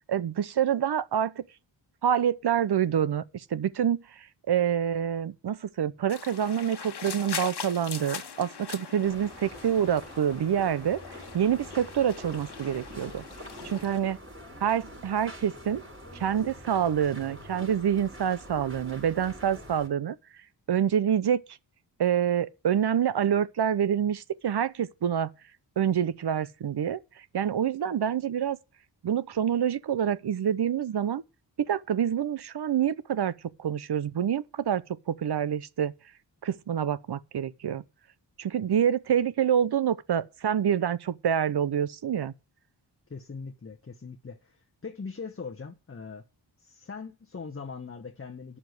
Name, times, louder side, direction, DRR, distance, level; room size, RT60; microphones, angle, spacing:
voice 1, 0.1-1.4 2.0-11.0 11.3-13.2 13.6-14.2 14.6-15.9 16.1-20.2 20.7-21.4 22.0-25.3 25.8-27.0 27.3-28.6 29.0-31.2 31.6-33.3 33.6-34.8 35.1-35.9 36.4-37.8 38.4-42.3, right 9 dB, 60° right, 0.7 m, -27 dB
sound 1, 6.1-14.0, left 6 dB, 60° left, 1.4 m, -41 dB
sound 2, 9.0-19.9, equal, 25° right, 4.9 m, -45 dB
voice 2, 43.1-46.2 46.6-48.6, left 5 dB, 30° left, 1.0 m, -41 dB
9.9 x 7.0 x 7.8 m
cardioid pair, 60°, 46 cm